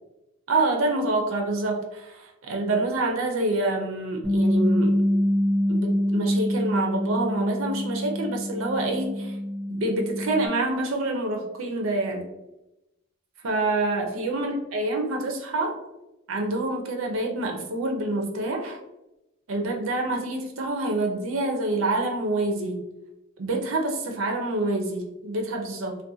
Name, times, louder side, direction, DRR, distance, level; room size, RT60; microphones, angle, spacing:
voice 1, 0.5-5.0 5.7-9.4 9.7-12.2 13.4-15.7 16.3-18.8 19.5-22.9 23.4-26.0, right 2 dB, 90° right, 2 dB, 0.5 m, -27 dB
Bass guitar, 4.2-10.5, left 1 dB, 30° right, 0.7 m, -25 dB
2.5 x 2.2 x 2.6 m, 0.93 s
head